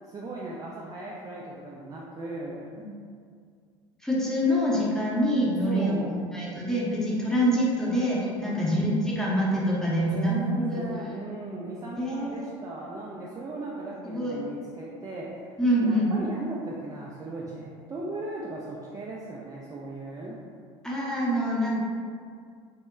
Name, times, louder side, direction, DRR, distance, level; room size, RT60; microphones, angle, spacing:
voice 1, 0.1-2.7 5.7-6.1 8.4-8.5 10.0-15.4 15.8-20.4, right 2 dB, 20° right, -5 dB, 0.3 m, -37 dB
voice 2, 4.0-10.8 12.0-12.5 14.0-14.4 15.6-16.1 20.8-21.8, equal, 5° left, -6 dB, 0.7 m, -25 dB
2.1 x 2.1 x 3.5 m, 2.1 s
hypercardioid pair, 70°, 16 cm